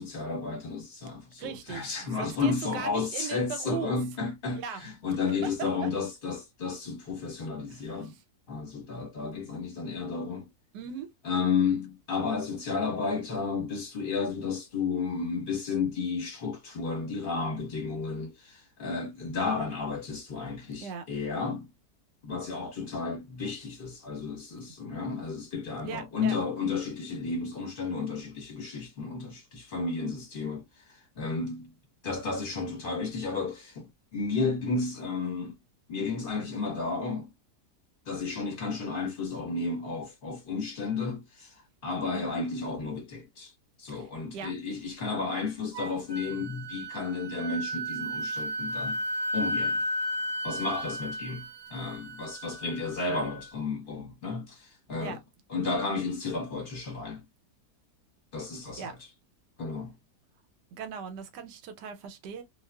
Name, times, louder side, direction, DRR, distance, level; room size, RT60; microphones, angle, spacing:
voice 1, 0.0-8.2 8.5-10.5 11.2-21.7 22.2-30.6 30.9-31.7 32.0-35.5 35.9-37.3 38.0-43.5 43.8-49.0 49.3-49.8 50.4-55.2 55.5-57.2 58.3-59.0 59.6-59.9, left 4 dB, 35° left, 1.0 m, -32 dB
voice 2, 1.4-4.0 4.6-4.8 5.2-5.9 7.7-8.2 10.7-11.1 20.8-21.1 25.8-26.4 42.1-42.4 43.9-44.5 55.0-55.2 58.8-59.0 60.7-62.4, right 7 dB, 80° right, 1.2 m, -39 dB
Wind instrument woodwind instrument, 45.7-53.5, equal, 65° right, 0.7 m, -34 dB
2.6 x 2.3 x 2.2 m
omnidirectional pair, 1.8 m